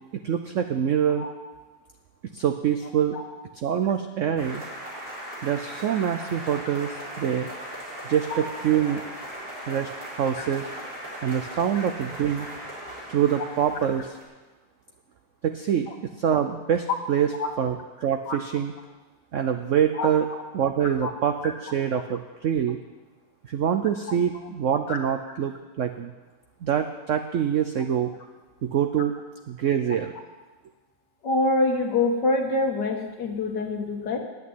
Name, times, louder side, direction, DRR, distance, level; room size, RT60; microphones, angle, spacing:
voice 1, 0.1-1.3 2.3-3.2 3.6-4.6 5.4-7.5 8.0-9.0 9.7-10.7 11.2-12.5 13.1-14.2 15.4-18.7 19.3-20.3 20.5-22.8 23.5-26.1 26.6-28.1 28.6-29.2 29.5-30.1, right 9 dB, 85° right, 7 dB, 0.6 m, -25 dB
sound 1, 4.4-14.2, right 1 dB, 60° right, 4.7 m, -38 dB
voice 2, 20.0-20.4 21.0-21.1 21.4-21.5 24.9-25.0 31.2-34.2, left 2 dB, 65° left, 3 dB, 1.9 m, -26 dB
9.2 x 8.4 x 9.3 m, 1.3 s
omnidirectional pair, 2.0 m